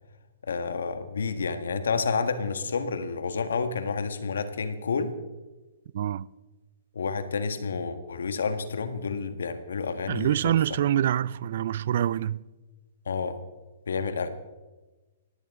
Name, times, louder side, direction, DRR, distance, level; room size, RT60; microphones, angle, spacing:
voice 1, 0.5-5.1 6.9-10.5 13.0-13.4 13.9-14.3, left 5 dB, 80° left, 1.6 m, -29 dB
voice 2, 5.9-6.3 10.1-12.4, right 11 dB, 60° right, 0.5 m, -25 dB
18.5 x 16.5 x 3.7 m
hypercardioid pair, 130°, 0 cm